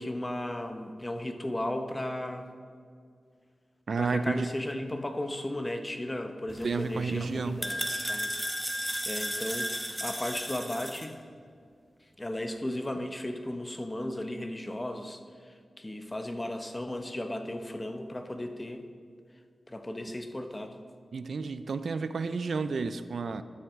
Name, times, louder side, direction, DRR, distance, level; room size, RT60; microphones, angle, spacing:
voice 1, 0.0-2.5 4.0-8.3 8.7-11.2 12.0-18.9 19.7-20.8, left 1 dB, 25° left, 7 dB, 0.7 m, -35 dB
voice 2, 3.9-4.5 6.6-7.7 21.1-23.4, right 4 dB, 75° right, 12 dB, 0.3 m, -31 dB
sound 1, 6.5-11.1, equal, 10° right, 0.9 m, -34 dB
12.5 x 5.9 x 3.6 m, 2.2 s
cardioid pair, 60°, 0 cm